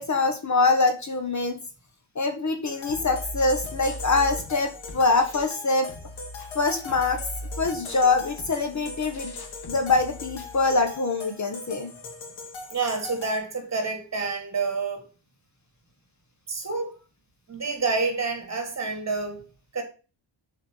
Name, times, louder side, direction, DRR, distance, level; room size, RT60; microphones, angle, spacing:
voice 1, 0.0-1.6 2.1-5.9 6.5-7.2 7.6-9.3 9.7-11.9, left 3 dB, 35° left, 1.5 m, -24 dB
sound 1, 2.7-13.4, left 3 dB, 80° left, 3.1 m, -41 dB
sound 2, 2.9-5.6 5.9-10.9, equal, 55° left, 2.0 m, -40 dB
voice 2, 12.7-15.1 16.5-16.9 17.5-19.4 19.7-19.8, right 4 dB, 35° right, 3.0 m, -28 dB
6.7 x 4.9 x 6.5 m
cardioid pair, 115°, 46 cm